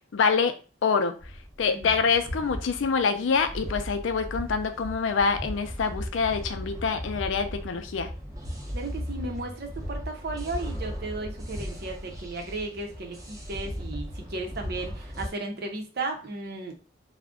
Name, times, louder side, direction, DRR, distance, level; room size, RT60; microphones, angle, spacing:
voice 1, 0.1-0.5 0.8-1.1 1.6-8.1, left 5 dB, 85° left, 9 dB, 0.4 m, -25 dB
sound 1, 1.2-15.3, equal, 20° right, 0.6 m, -37 dB
voice 2, 8.7-16.7, right 2 dB, 55° right, 3 dB, 0.6 m, -35 dB
2.5 x 2.1 x 3.6 m, 0.34 s
head